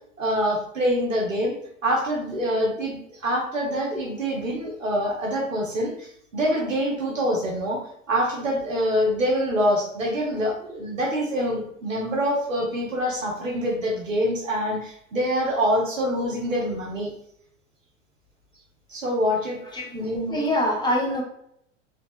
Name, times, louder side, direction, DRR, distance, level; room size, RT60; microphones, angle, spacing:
voice 1, 0.2-1.6 1.8-7.8 8.1-17.1 18.9-19.6 19.8-20.4, equal, 85° right, -1 dB, 1.1 m, -25 dB
voice 2, 20.2-21.2, left 1 dB, 10° left, -1 dB, 0.9 m, -24 dB
3.3 x 2.8 x 2.4 m, 0.72 s
figure-of-eight pair, 85°, 38 cm